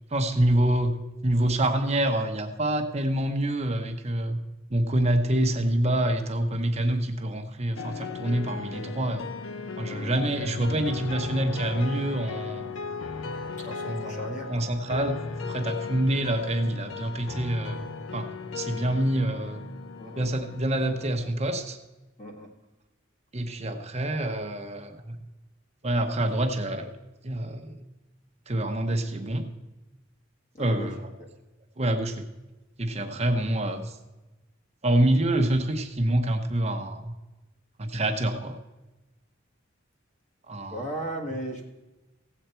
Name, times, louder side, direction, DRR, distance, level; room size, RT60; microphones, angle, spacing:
voice 1, 0.1-1.0 1.2-4.4 4.7-9.2 9.8-12.7 13.9-15.2 15.4-17.9 18.1-18.3 18.5-19.6 20.2-21.8 23.3-25.2 25.8-26.9 27.2-27.8 28.5-29.5 30.6-31.1 31.8-32.3 32.8-34.0 34.8-37.1 37.8-38.6 40.5-40.8, right 1 dB, 35° right, 6 dB, 0.9 m, -26 dB
sound 1, 7.7-21.1, left 4 dB, 75° left, 0.7 m, -36 dB
voice 2, 9.8-10.2 13.6-14.7 15.8-16.0 20.0-20.3 22.2-22.5 30.5-30.9 31.2-31.3 33.0-33.3 40.7-41.7, right 1 dB, 40° left, 1 dB, 1.8 m, -37 dB
16.0 x 8.0 x 4.4 m, 1.1 s
head